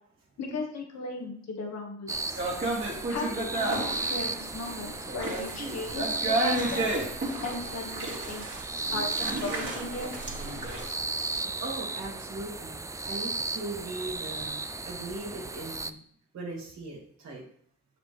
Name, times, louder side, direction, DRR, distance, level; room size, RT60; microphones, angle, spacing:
voice 1, 0.4-2.4 3.1-6.9 7.4-10.2, left 3 dB, 60° left, 2 dB, 1.9 m, -37 dB
sound 1, 2.1-15.9, right 3 dB, 10° right, 0.3 m, -35 dB
sound 2, 2.3-10.9, right 2 dB, 40° right, 2.5 m, -32 dB
voice 2, 11.6-14.6 14.8-16.0 16.3-17.4, right 2 dB, 60° right, -4 dB, 2.4 m, -39 dB
6.8 x 5.9 x 3.5 m, 0.62 s
cardioid pair, 90°, 30 cm